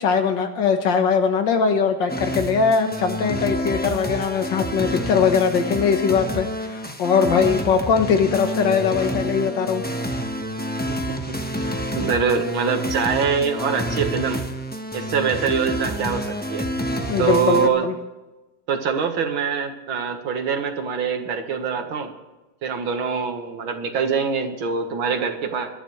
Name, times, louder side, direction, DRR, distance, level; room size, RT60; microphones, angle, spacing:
voice 1, 0.0-9.8 17.1-18.0, left 6 dB, 65° left, 6 dB, 1.8 m, -21 dB
sound 1, 2.1-17.7, equal, 10° left, 0.6 m, -28 dB
voice 2, 10.9-11.7 12.0-14.4 14.9-16.7 17.2-17.9 18.7-22.1 22.6-25.7, right 6 dB, 80° right, 5 dB, 2.3 m, -24 dB
21.0 x 12.5 x 3.2 m, 1.1 s
omnidirectional pair, 2.2 m